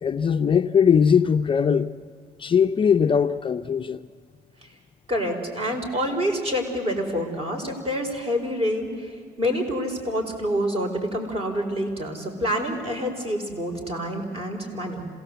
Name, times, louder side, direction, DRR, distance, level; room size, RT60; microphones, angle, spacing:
voice 1, 0.0-1.9 2.4-4.1, left 7 dB, 30° left, 0.5 m, -20 dB
voice 2, 5.1-15.1, equal, 35° right, 4.7 m, -27 dB
27.0 x 17.5 x 8.0 m
cardioid pair, 110°, 17 cm